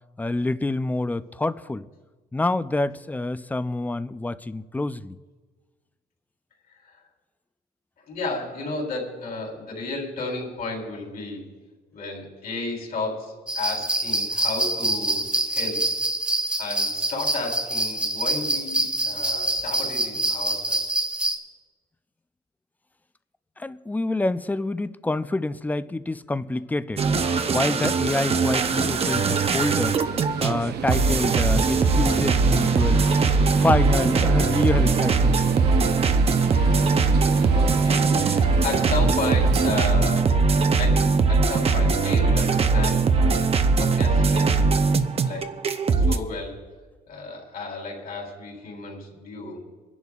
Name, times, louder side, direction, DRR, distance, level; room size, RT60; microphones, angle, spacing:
voice 1, 0.2-1.9 2.3-5.2 23.6-27.0 27.5-30.0 30.4-33.0 33.6-35.4, left 2 dB, 10° left, 0.4 m, -27 dB
voice 2, 8.1-11.5 11.9-15.8 16.6-20.8 37.5-40.3 40.8-43.4 43.8-44.7 45.2-45.5 46.0-46.6 47.1-49.6, left 3 dB, 60° left, 3.7 m, -33 dB
sound 1, 13.5-21.4, right 1 dB, 5° right, 1.5 m, -26 dB
sound 2, 27.0-46.2, right 4 dB, 35° right, 0.6 m, -21 dB
sound 3, 28.4-39.9, right 8 dB, 75° right, 0.7 m, -33 dB
26.5 x 11.0 x 2.4 m
cardioid pair, 115°, 17 cm